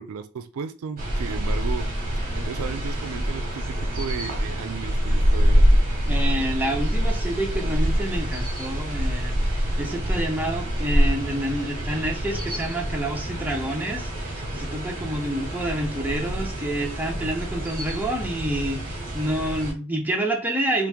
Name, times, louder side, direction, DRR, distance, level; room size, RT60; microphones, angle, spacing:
voice 1, 0.0-1.9 2.2-5.8, right 6 dB, 70° right, 0.4 m, -34 dB
sound 1, 1.0-19.7, equal, 40° right, 1.0 m, -25 dB
voice 2, 6.1-20.9, right 1 dB, 10° right, 0.6 m, -28 dB
2.9 x 2.5 x 3.4 m
head